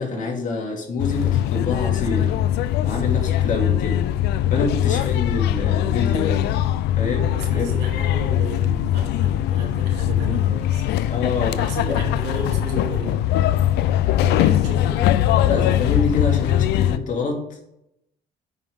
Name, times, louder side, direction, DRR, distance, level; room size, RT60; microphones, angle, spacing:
voice 1, 0.0-2.3 2.8-4.0 4.5-6.4 7.0-7.8 11.0-11.6 11.9-12.0 15.4-17.6, left 3 dB, 50° left, 0 dB, 2.4 m, -26 dB
sound 1, 1.0-17.0, left 12 dB, 80° left, 0.5 m, -21 dB
voice 2, 7.0-10.8 11.5-13.1 14.2-15.3, right 2 dB, 85° right, 0 dB, 2.7 m, -33 dB
9.2 x 5.5 x 3.6 m, 0.81 s
cardioid pair, 110°, 17 cm